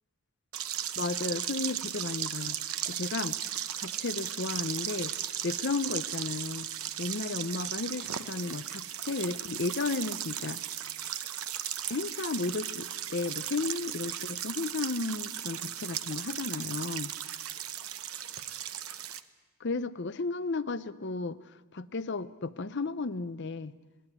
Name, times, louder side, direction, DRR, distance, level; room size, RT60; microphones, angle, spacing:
sound 1, 0.5-19.2, right 11 dB, 75° right, 0.9 m, -36 dB
voice 1, 1.0-3.4 3.7-5.1 5.4-6.7 7.0-10.6 11.9-17.1 19.6-21.4 21.7-23.7, left 3 dB, 50° left, 13 dB, 0.7 m, -34 dB
21.5 x 17.5 x 8.2 m, 1.3 s
head